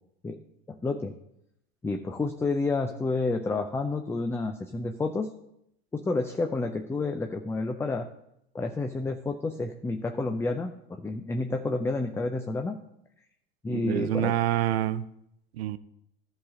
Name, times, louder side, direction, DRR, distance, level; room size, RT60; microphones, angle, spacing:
voice 1, 0.7-1.1 1.8-5.3 5.9-8.1 8.5-12.8 13.6-14.3, left 3 dB, 10° left, 6 dB, 0.4 m, -30 dB
voice 2, 13.7-15.1 15.5-15.8, right 12 dB, 75° right, 15 dB, 0.6 m, -27 dB
11.5 x 4.1 x 6.3 m, 0.78 s
hypercardioid pair, 95°, 31 cm